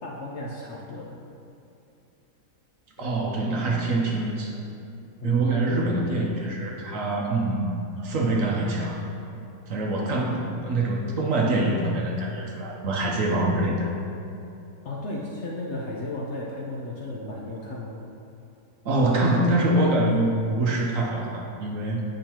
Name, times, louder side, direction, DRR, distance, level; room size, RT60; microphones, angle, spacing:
voice 1, 0.0-1.2 3.0-3.2 5.2-5.5 14.8-18.0, left 2 dB, 60° left, -4 dB, 0.7 m, -34 dB
voice 2, 3.0-4.6 5.2-7.7 8.0-9.0 9.7-13.9 18.8-22.0, right 2 dB, 60° right, -1 dB, 0.9 m, -24 dB
8.7 x 5.3 x 2.9 m, 2.7 s
omnidirectional pair, 1.8 m